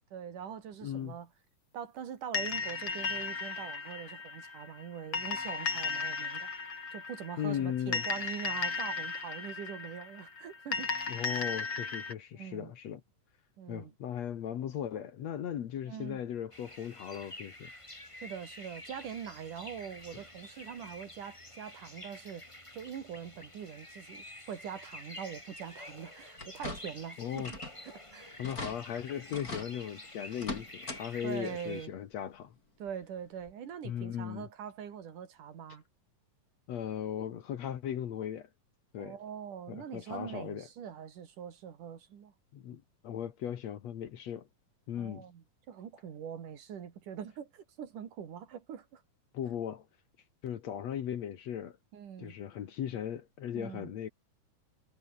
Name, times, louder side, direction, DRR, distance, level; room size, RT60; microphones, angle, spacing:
voice 1, 0.1-1.3 1.7-6.5 6.9-10.9 11.3-11.5 12.3-12.7 13.6-13.9 15.8-16.2 18.2-22.5 22.7-27.5 27.8-28.4 31.2-31.9 32.8-35.8 39.0-42.3 45.0-49.0 51.9-52.3 53.5-53.9, right 8 dB, 70° right, 3.9 m, -43 dB
voice 2, 0.8-1.2 7.4-8.0 11.1-13.0 13.7-17.7 27.2-27.5 28.4-32.5 33.8-34.5 36.7-38.5 38.9-39.2 39.7-40.7 42.5-44.5 44.9-45.3 49.3-49.9 50.4-51.8 52.2-54.1, left 9 dB, 60° left, 2.4 m, -37 dB
sound 1, 2.3-12.1, left 4 dB, 40° left, 5.0 m, -36 dB
sound 2, 16.5-31.9, left 1 dB, 10° left, 3.5 m, -49 dB
sound 3, 26.4-27.1 27.4-27.8 28.1-28.2 28.4-28.8 29.3-29.7 30.3-31.0 31.4-31.5 32.9-33.0 33.5-33.6, left 2 dB, 25° left, 6.0 m, -41 dB
omnidirectional pair, 3.8 m